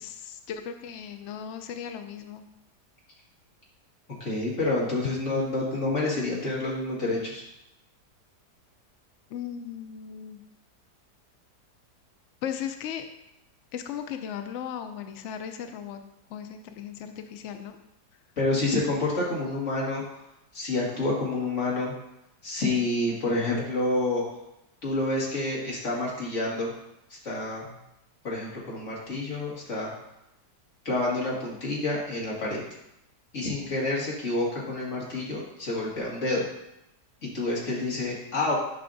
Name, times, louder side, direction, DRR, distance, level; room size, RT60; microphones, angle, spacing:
voice 1, 0.0-2.4 9.3-10.4 12.4-13.0 13.7-16.0 16.3-17.8, left 8 dB, 80° left, 7 dB, 0.6 m, -37 dB
voice 2, 4.2-7.4 18.4-20.0 20.5-21.9 22.4-24.2 24.8-26.7 27.2-27.7 28.2-29.9 30.9-32.6 33.3-36.4 37.3-38.5, left 2 dB, 45° left, -5 dB, 2.2 m, -28 dB
10.0 x 5.6 x 2.6 m, 0.86 s
omnidirectional pair, 1.8 m